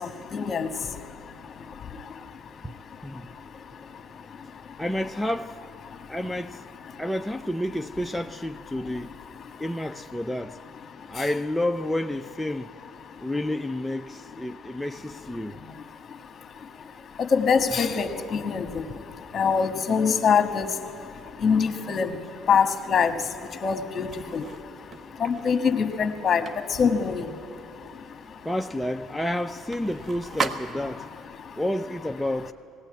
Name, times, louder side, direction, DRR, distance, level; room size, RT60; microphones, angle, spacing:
voice 1, 0.3-0.7 17.3-18.8 19.3-20.7 21.4-22.1 22.5-23.1 23.6-24.1 24.3-24.4 25.2-26.4 26.8-27.2, left 6 dB, 40° left, 1.6 m, -23 dB
voice 2, 4.8-5.6 6.1-6.6 7.0-9.2 9.6-10.6 11.1-12.7 13.2-15.6 28.4-31.1 31.6-32.5, left 1 dB, 5° left, 0.6 m, -30 dB
sound 1, 24.1-31.1, right 5 dB, 40° right, 1.3 m, -38 dB
19.5 x 17.0 x 8.7 m
supercardioid pair, 75°, 0 cm